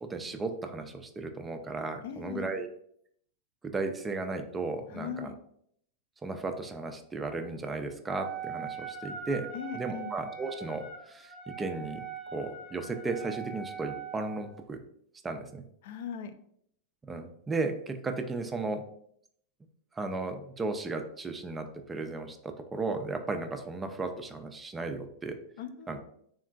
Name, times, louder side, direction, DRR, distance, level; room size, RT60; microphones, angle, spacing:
voice 1, 0.0-2.7 3.6-5.3 6.2-12.1 12.3-14.8 15.2-15.6 17.0-18.9 19.9-25.4 25.9-26.0, right 3 dB, 15° right, 6 dB, 0.3 m, -35 dB
voice 2, 2.0-2.5 4.9-5.3 9.5-10.1 15.8-16.3 25.6-26.0, left 8 dB, 65° left, 10 dB, 0.3 m, -39 dB
Wind instrument woodwind instrument, 8.1-14.5, right 7 dB, 10° left, 0.8 m, -41 dB
3.6 x 2.4 x 2.2 m, 0.68 s
supercardioid pair, 130°, 0 cm